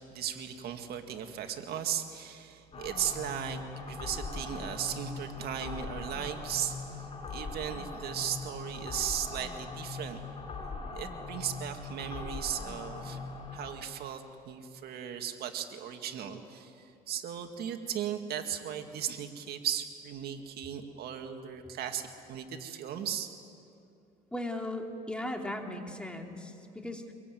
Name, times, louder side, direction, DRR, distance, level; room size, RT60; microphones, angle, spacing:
voice 1, 0.1-10.2 10.9-13.2 13.5-23.3, right 9 dB, 70° right, 5 dB, 2.0 m, -37 dB
sound 1, 2.7-13.7, left 3 dB, 35° left, 5.2 m, -41 dB
voice 2, 24.3-27.1, left 1 dB, 5° left, 2 dB, 2.8 m, -37 dB
24.5 x 22.5 x 9.3 m, 2.6 s
cardioid pair, 110°, 17 cm